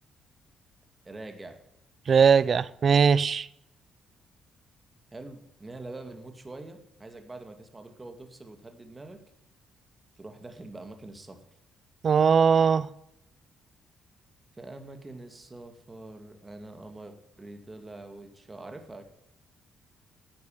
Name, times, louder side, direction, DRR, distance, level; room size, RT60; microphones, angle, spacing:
voice 1, 1.0-1.6 5.1-9.2 10.2-11.4 14.6-19.1, right 2 dB, 20° right, 2.3 m, -44 dB
voice 2, 2.1-3.5 12.0-12.9, right 6 dB, 50° right, 0.6 m, -20 dB
13.0 x 9.6 x 7.3 m
cardioid pair, 90°, 0 cm